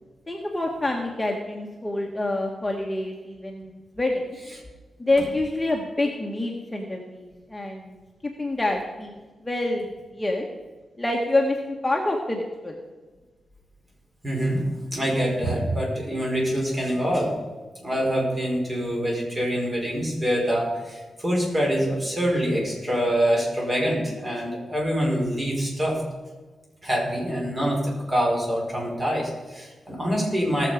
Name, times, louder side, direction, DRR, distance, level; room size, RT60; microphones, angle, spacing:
voice 1, 0.3-4.4 5.0-8.0 8.2-9.9 10.1-10.4 11.0-12.7, left 2 dB, 15° left, 0 dB, 1.5 m, -27 dB
voice 2, 14.2-14.6 14.9-17.3 17.8-26.0 26.8-30.7, equal, 30° right, -2 dB, 5.2 m, -25 dB
18.5 x 7.2 x 5.1 m, 1.3 s
cardioid pair, 95°, 0 cm